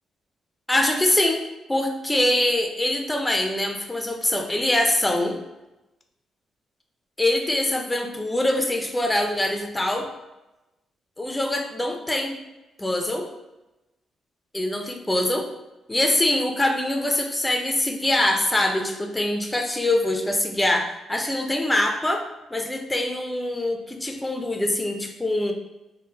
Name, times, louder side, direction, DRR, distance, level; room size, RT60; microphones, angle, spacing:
voice 1, 0.7-1.4 1.7-5.4 7.2-10.1 11.2-12.4 12.8-13.3 14.5-15.5 15.9-22.3 22.5-25.5, left 1 dB, 15° left, 3 dB, 0.4 m, -24 dB
3.6 x 2.1 x 2.8 m, 0.98 s
cardioid pair, 85°, 0 cm